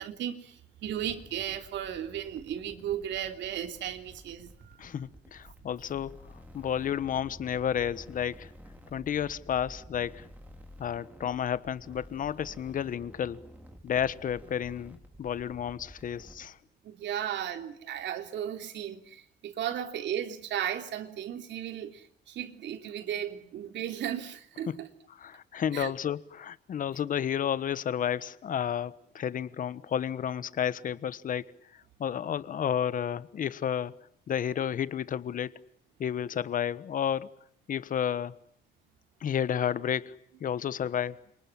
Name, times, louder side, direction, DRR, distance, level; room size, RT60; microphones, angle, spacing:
voice 1, 0.0-4.8 16.8-24.9 25.7-25.9, right 10 dB, 85° right, 3.2 m, -35 dB
sound 1, 0.8-16.4, equal, 10° right, 4.1 m, -51 dB
voice 2, 4.8-8.5 8.9-10.3 10.8-13.4 13.8-16.6 24.7-24.8 25.2-31.5 32.0-33.9 34.3-35.6 36.0-37.3 37.7-38.4 39.2-41.1, left 9 dB, 50° left, 1.3 m, -31 dB
30.0 x 27.0 x 7.3 m
cardioid pair, 155°, 18 cm